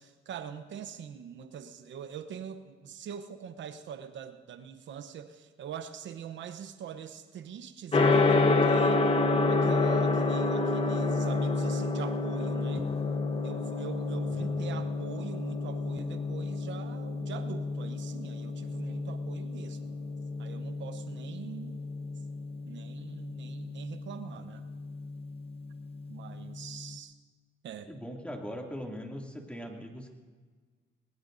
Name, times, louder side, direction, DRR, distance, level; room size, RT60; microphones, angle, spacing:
voice 1, 0.0-9.0 9.5-12.9 13.4-20.0 20.4-21.8 22.6-24.6 26.1-27.1 27.6-27.9, right 8 dB, 70° right, 9 dB, 0.9 m, -43 dB
Gong, 7.9-26.9, left 3 dB, 30° left, 1.3 m, -29 dB
voice 2, 14.3-14.8 27.9-30.1, equal, 5° left, 0 dB, 2.5 m, -41 dB
21.0 x 20.0 x 2.6 m, 1.5 s
cardioid pair, 90°, 20 cm